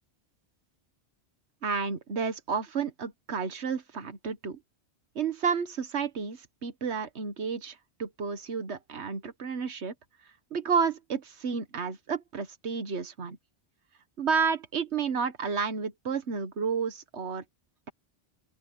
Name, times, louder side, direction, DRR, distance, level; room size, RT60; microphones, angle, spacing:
voice 1, 1.6-4.6 5.1-9.9 10.5-13.4 14.2-17.4, right 5 dB, 85° right, 1.6 m, -31 dB
open air
omnidirectional pair, 1.1 m